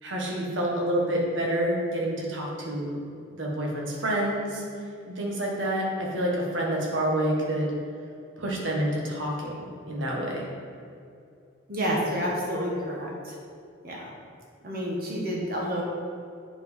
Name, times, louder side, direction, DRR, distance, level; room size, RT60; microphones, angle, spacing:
voice 1, 0.0-3.0 3.3-4.6 5.1-7.7 8.4-10.5, right 1 dB, 65° right, -2 dB, 1.7 m, -28 dB
voice 2, 11.7-13.4 13.8-14.1 14.6-15.8, equal, 45° right, -3 dB, 1.5 m, -29 dB
8.0 x 4.6 x 5.4 m, 2.5 s
head